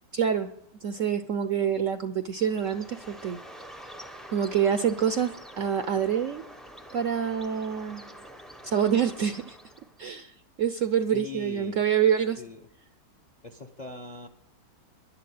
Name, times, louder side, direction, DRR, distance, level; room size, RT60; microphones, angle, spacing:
voice 1, 0.1-0.5 0.8-3.4 4.3-6.4 6.9-8.1 8.6-9.6 10.0-10.3 10.6-12.4, right 8 dB, 65° right, 10 dB, 0.8 m, -26 dB
Bird, 2.3-10.0, right 1 dB, ahead, 0.4 m, -46 dB
voice 2, 11.1-11.8 12.4-12.6 13.4-14.3, left 4 dB, 35° left, 7 dB, 0.6 m, -41 dB
11.0 x 11.0 x 8.6 m, 0.79 s
omnidirectional pair, 2.0 m